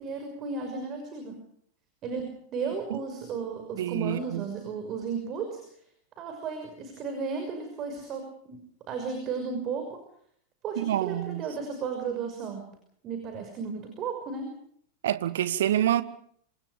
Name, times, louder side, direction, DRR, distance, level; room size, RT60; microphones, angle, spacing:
voice 1, 0.0-1.4 2.0-5.8 6.2-10.0 10.6-12.7 13.0-14.5, right 5 dB, 35° right, 6.0 m, -34 dB
voice 2, 3.8-4.4 10.8-11.4 15.0-16.0, right 12 dB, 60° right, 1.6 m, -27 dB
27.0 x 26.5 x 5.1 m
figure-of-eight pair, 90°, 0 cm